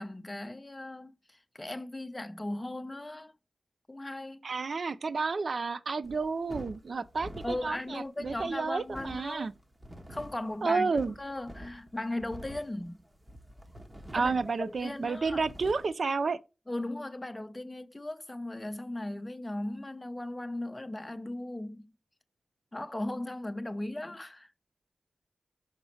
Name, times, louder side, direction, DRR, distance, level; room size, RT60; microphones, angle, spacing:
voice 1, 0.0-3.3 3.9-4.4 7.4-9.5 10.1-10.9 11.2-13.0 14.1-15.4 16.7-21.9 22.7-24.5, left 1 dB, 20° left, 0.7 m, -37 dB
voice 2, 4.4-9.5 10.6-11.1 14.1-16.4, right 4 dB, 70° right, 0.4 m, -31 dB
sound 1, 6.0-15.9, equal, 25° right, 1.2 m, -48 dB
6.3 x 5.1 x 3.1 m
wide cardioid pair, 65°, 0 cm